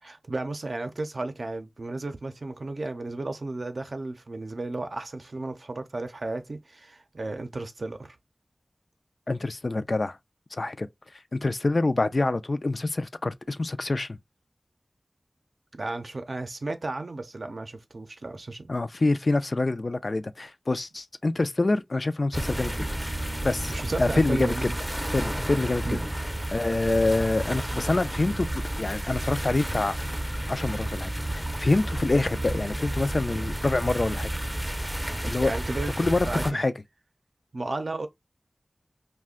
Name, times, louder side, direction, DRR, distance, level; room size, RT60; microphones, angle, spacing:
voice 1, 0.0-8.2 15.7-18.7 23.7-24.8 25.8-26.0 35.4-35.9 36.3-36.6 37.5-38.1, right 2 dB, 70° right, 0.5 m, -34 dB
voice 2, 9.3-10.2 10.5-10.9 11.3-14.2 18.7-22.9 23.4-24.7 25.1-26.0 26.5-28.5 28.8-30.0 30.5-34.3 35.2-35.5 36.0-36.7, left 2 dB, 55° left, 0.3 m, -26 dB
sound 1, 22.3-36.5, right 1 dB, 10° right, 0.5 m, -31 dB
2.4 x 2.1 x 3.5 m
wide cardioid pair, 55°, 0 cm